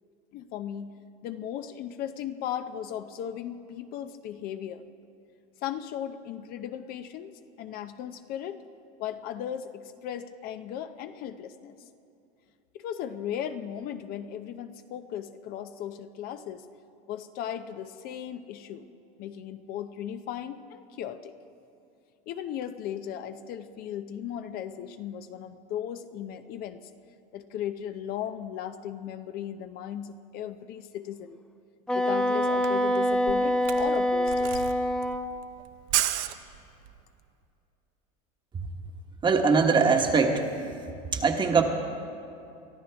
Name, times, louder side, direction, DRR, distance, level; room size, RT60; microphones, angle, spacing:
voice 1, 0.3-0.9 1.2-4.8 5.6-8.6 9.0-11.8 12.7-16.6 17.1-18.9 19.2-21.3 22.3-26.8 27.3-31.4 31.9-34.6, left 10 dB, 55° left, 9 dB, 0.6 m, -36 dB
Wind instrument woodwind instrument, 31.9-35.3, equal, 5° left, 0.6 m, -25 dB
Camera, 32.2-32.3 32.5-37.0, right 14 dB, 75° right, 0.7 m, -32 dB
voice 2, 39.2-40.5 41.1-41.6, right 5 dB, 25° right, 4 dB, 1.2 m, -22 dB
23.5 x 13.0 x 3.5 m, 2.6 s
supercardioid pair, 125°, 19 cm